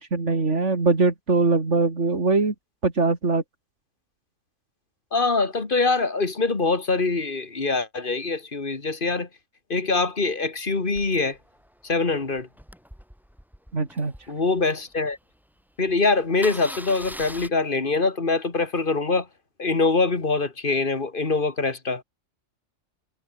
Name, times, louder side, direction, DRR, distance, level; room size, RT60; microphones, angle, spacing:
voice 1, 0.0-2.5 2.8-3.4 13.7-14.1, right 3 dB, 70° right, 3.5 m, -22 dB
voice 2, 5.1-9.3 9.7-11.4 11.8-12.5 14.3-15.2 15.8-19.3 19.6-22.0, left 3 dB, 45° left, 2.4 m, -24 dB
Engine starting, 10.9-15.1 15.6-15.7 15.9-16.0 16.3-17.5, equal, ahead, 5.1 m, -42 dB
omnidirectional pair, 1.3 m